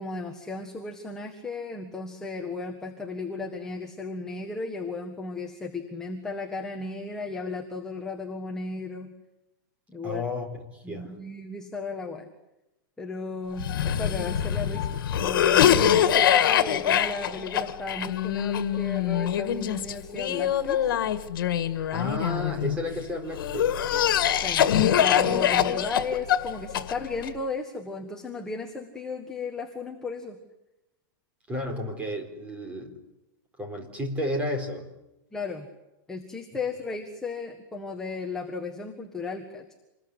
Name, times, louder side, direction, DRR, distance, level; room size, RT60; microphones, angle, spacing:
voice 1, 0.0-9.1 9.9-10.2 10.8-12.3 13.0-20.9 24.3-24.7 25.0-30.4 35.3-35.7 36.1-39.7, left 3 dB, 5° left, 0 dB, 1.6 m, -35 dB
voice 2, 10.0-11.1 21.9-23.8 31.5-32.9 33.6-34.8, left 1 dB, 10° right, 4 dB, 4.3 m, -32 dB
Cough, 13.6-22.8 23.4-27.3, left 10 dB, 75° left, 2.0 m, -24 dB
27.5 x 21.5 x 9.8 m, 0.97 s
supercardioid pair, 175°, 11 cm